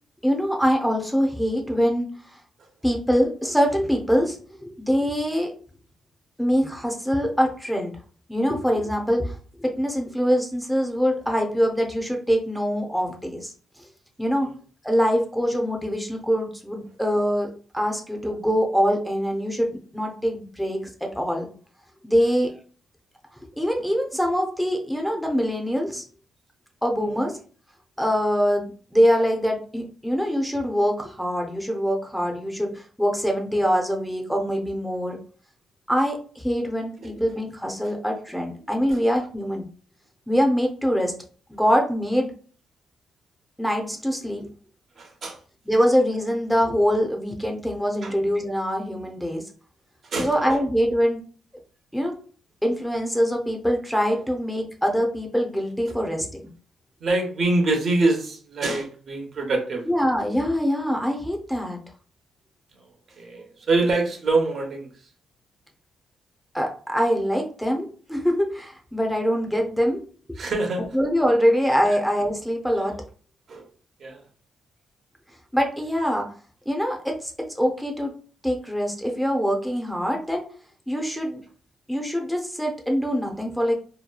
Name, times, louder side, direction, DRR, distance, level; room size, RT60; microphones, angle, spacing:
voice 1, 0.2-2.1 2.8-5.5 6.4-8.0 8.3-13.5 14.2-14.5 14.8-21.5 22.0-22.5 23.6-26.0 26.8-27.4 28.0-35.2 35.9-39.7 40.3-41.1 41.5-42.3 43.6-44.5 45.7-49.4 50.2-51.2 51.9-52.2 52.6-56.4 59.9-61.8 66.5-70.0 70.9-72.9 75.5-76.3 76.7-78.1 78.4-80.5 80.9-81.4 81.9-83.8, equal, ahead, 2 dB, 0.5 m, -24 dB
voice 2, 45.0-45.4 48.0-48.1 50.0-50.5 57.0-59.8 63.2-64.9 70.4-70.8 71.9-72.0 73.5-73.6 74.0-74.2, right 2 dB, 55° right, 2 dB, 0.7 m, -25 dB
2.8 x 2.2 x 2.2 m, 0.41 s
cardioid pair, 90°, 0 cm